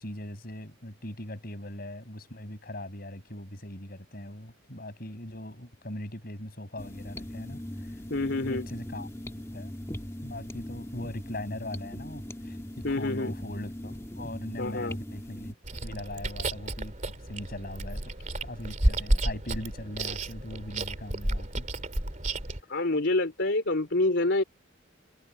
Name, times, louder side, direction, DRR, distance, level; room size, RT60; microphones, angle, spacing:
voice 1, 0.0-8.0 8.2-9.2 9.5-9.7 10.2-18.1 18.4-21.7, left 1 dB, 50° left, 7.2 m, -40 dB
sound 1, 6.8-15.5, left 1 dB, 15° left, 1.7 m, -40 dB
voice 2, 8.1-8.7 12.8-13.3 14.6-15.0 22.7-24.4, left 2 dB, 65° left, 3.2 m, -27 dB
Chewing mastication, 15.6-22.6, right 1 dB, 40° right, 2.9 m, -31 dB
head